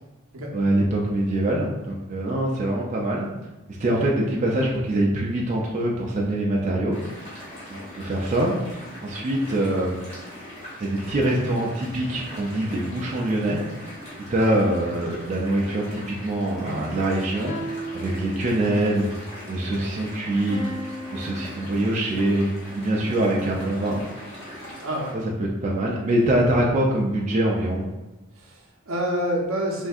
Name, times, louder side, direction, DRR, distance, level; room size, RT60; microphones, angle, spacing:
voice 1, 0.5-3.3 3.8-7.0 7.7-10.0 10.8-13.6 14.3-17.5 17.9-19.1 19.5-20.6 21.1-24.0 25.4-27.8, right 1 dB, 35° right, -3 dB, 0.3 m, -24 dB
sound 1, 6.9-25.1, left 1 dB, 30° left, 0.9 m, -41 dB
sound 2, 14.5-15.9 17.5-18.9 20.5-21.9, equal, 90° left, 0.6 m, -39 dB
voice 2, 24.8-25.2 28.4-29.9, equal, 80° right, -1 dB, 0.6 m, -28 dB
3.4 x 2.6 x 2.3 m, 1.0 s
head